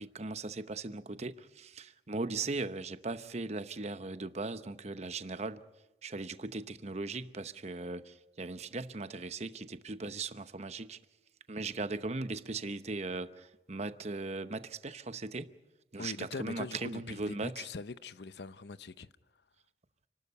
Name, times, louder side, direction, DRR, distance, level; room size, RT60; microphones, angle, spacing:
voice 1, 0.0-5.6 6.0-11.0 11.5-15.5 15.9-17.6, right 3 dB, 40° right, 0.9 m, -38 dB
voice 2, 16.0-19.1, left 4 dB, 65° left, 0.7 m, -42 dB
29.0 x 12.5 x 9.7 m
head